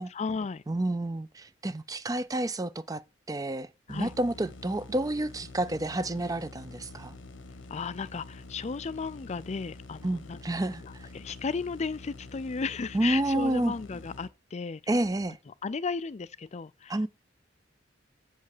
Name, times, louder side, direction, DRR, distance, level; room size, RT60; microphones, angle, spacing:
voice 1, 0.0-0.6 3.9-4.1 7.7-10.4 10.8-14.8 15.5-17.0, left 4 dB, 35° left, 0.4 m, -35 dB
voice 2, 0.7-3.0 3.3-7.1 10.0-10.8 12.9-13.7 14.9-15.4 16.9-17.1, right 1 dB, 20° right, 0.5 m, -29 dB
sound 1, 3.9-14.3, left 2 dB, 75° left, 1.1 m, -47 dB
7.8 x 5.3 x 6.6 m
head